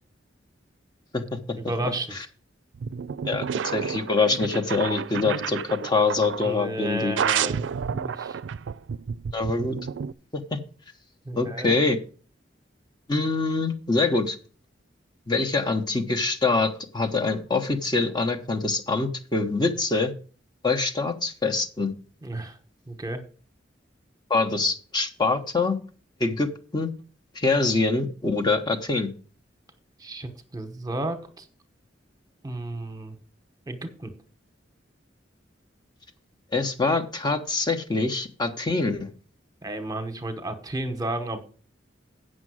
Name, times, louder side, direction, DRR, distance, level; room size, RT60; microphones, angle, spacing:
voice 1, 1.6-2.2 6.4-7.6 7.9-8.4 11.3-11.8 22.2-22.6 22.9-23.2 30.0-31.5 32.4-33.2 33.7-34.1 39.6-41.4, right 1 dB, 20° right, 7 dB, 1.0 m, -32 dB
sound 1, 2.7-6.6 7.2-10.1, right 7 dB, 75° right, 0.4 m, -30 dB
voice 2, 3.3-7.1 9.3-9.8 10.3-10.6 11.3-12.0 13.1-14.4 15.3-20.1 20.6-21.9 24.3-25.7 26.2-26.9 27.3-29.1 36.5-39.1, left 3 dB, 25° left, 5 dB, 0.8 m, -25 dB
8.9 x 6.3 x 6.2 m, 0.41 s
head